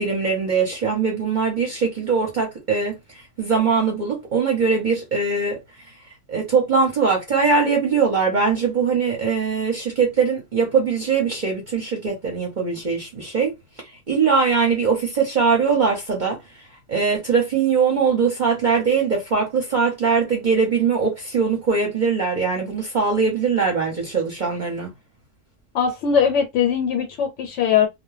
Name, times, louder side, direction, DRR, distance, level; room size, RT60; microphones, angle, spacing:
voice 1, 0.0-5.9 6.3-13.5 14.1-16.4 16.9-24.9, right 5 dB, 45° right, 0.8 m, -21 dB
voice 2, 25.7-27.9, left 7 dB, 80° left, 0.9 m, -20 dB
2.2 x 2.1 x 3.1 m
omnidirectional pair, 1.3 m